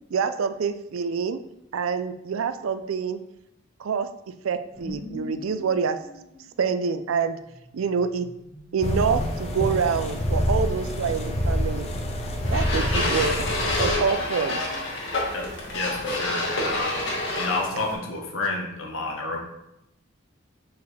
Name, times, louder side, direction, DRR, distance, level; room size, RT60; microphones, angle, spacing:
voice 1, 0.1-1.4 1.7-3.2 3.8-4.1 4.4-6.0 6.6-7.4 7.7-8.3 8.7-11.9 12.5-13.4 13.8-14.6, right 6 dB, 80° right, 11 dB, 0.4 m, -26 dB
sound 1, 4.7-9.9 12.6-13.3 13.6-14.0 16.5-17.9, left 1 dB, 10° left, 1.6 m, -45 dB
sound 2, 8.8-13.9, equal, 30° left, 0.7 m, -27 dB
sound 3, 12.4-17.9, left 2 dB, 65° left, 1.6 m, -28 dB
voice 2, 15.3-19.4, left 2 dB, 80° left, 1 dB, 1.2 m, -30 dB
6.6 x 4.6 x 3.3 m, 0.86 s
head